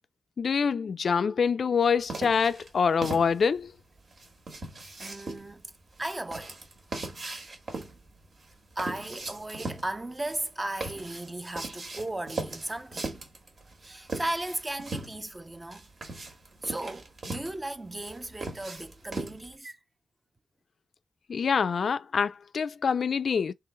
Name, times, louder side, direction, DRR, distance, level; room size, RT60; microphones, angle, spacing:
voice 1, 0.4-3.7 21.3-23.5, left 6 dB, 60° left, 0.3 m, -25 dB
sound 1, 2.1-19.5, right 3 dB, 50° right, 1.5 m, -39 dB
voice 2, 5.0-5.7 6.0-6.6 7.8-7.9 8.8-13.1 13.6-16.3 16.6-19.8, right 1 dB, 20° right, 0.5 m, -36 dB
3.7 x 3.2 x 4.4 m
wide cardioid pair, 105°, 0 cm